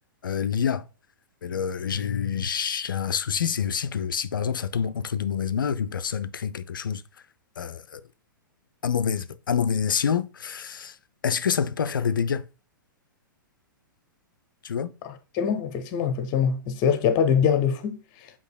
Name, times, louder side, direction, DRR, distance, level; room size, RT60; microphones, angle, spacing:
voice 1, 0.2-0.8 1.4-7.0 7.6-8.0 8.8-10.9 11.2-12.4 14.6-14.9, left 7 dB, 75° left, 0.4 m, -27 dB
voice 2, 15.0-18.3, left 7 dB, 35° left, 0.7 m, -24 dB
6.5 x 2.9 x 2.2 m
figure-of-eight pair, 110°, 11 cm